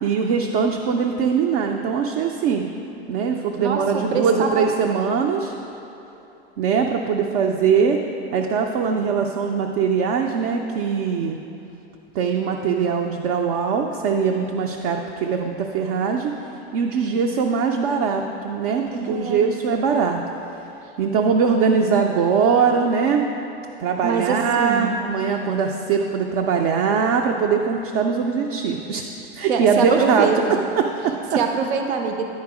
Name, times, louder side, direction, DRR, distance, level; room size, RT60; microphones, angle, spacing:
voice 1, 0.0-2.6 3.1-5.5 6.6-8.0 8.3-11.4 12.2-16.4 16.7-20.2 21.0-23.3 23.8-29.0 29.4-30.3 30.8-31.4, right 6 dB, 40° right, 2 dB, 0.4 m, -21 dB
voice 2, 3.6-4.7 18.9-19.5 24.0-24.9 29.5-30.6 31.4-32.2, right 5 dB, 85° right, 4 dB, 0.7 m, -24 dB
10.5 x 4.4 x 4.7 m, 3.0 s
supercardioid pair, 160°, 32 cm